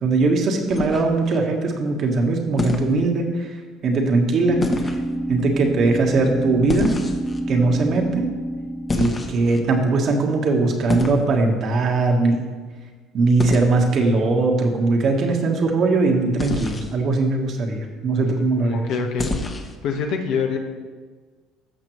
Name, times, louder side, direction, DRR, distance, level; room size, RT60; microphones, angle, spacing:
voice 1, 0.0-3.5 3.8-4.9 5.3-6.9 7.5-8.3 8.9-12.5 13.1-18.8, right 3 dB, 55° right, 2 dB, 1.4 m, -20 dB
sound 1, 0.7-1.4 2.6-2.9 4.6-5.0 6.7-7.4 8.9-9.6 10.9-11.2 13.4-13.7 16.4-16.9 19.2-19.8, left 3 dB, 25° left, 1.0 m, -26 dB
sound 2, 4.5-10.3, right 1 dB, 5° right, 0.4 m, -28 dB
voice 2, 18.2-19.3 19.8-20.6, left 5 dB, 70° left, 3 dB, 1.1 m, -26 dB
14.0 x 5.9 x 3.2 m, 1.4 s
supercardioid pair, 90°, 0 cm